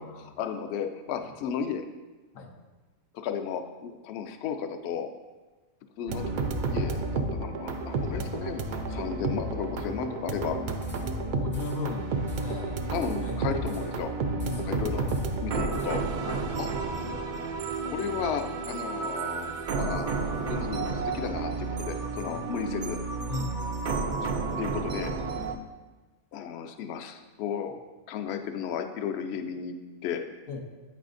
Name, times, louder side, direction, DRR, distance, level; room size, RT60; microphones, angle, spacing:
voice 1, 0.0-1.8 3.1-5.1 6.0-6.2 6.6-10.6 12.9-14.1 14.6-15.1 15.4-16.0 16.6-16.7 17.8-20.1 20.5-23.0 24.6-25.1 26.3-27.8 28.1-29.8 30.0-30.2, left 7 dB, 65° left, 7 dB, 0.7 m, -34 dB
sound 1, 6.1-25.5, right 3 dB, 65° right, 0.4 m, -31 dB
sound 2, 10.8-11.3 11.5-11.9 12.3-12.6 12.9-14.0 14.4-14.8 15.1-16.2, left 1 dB, 15° left, 0.5 m, -53 dB
voice 2, 11.3-12.8 13.2-13.9 14.4-14.9 16.2-16.5 22.2-22.5 23.3-23.5 30.5-30.6, left 3 dB, 90° left, 2 dB, 1.2 m, -37 dB
8.6 x 5.6 x 2.5 m, 1.2 s
omnidirectional pair, 1.4 m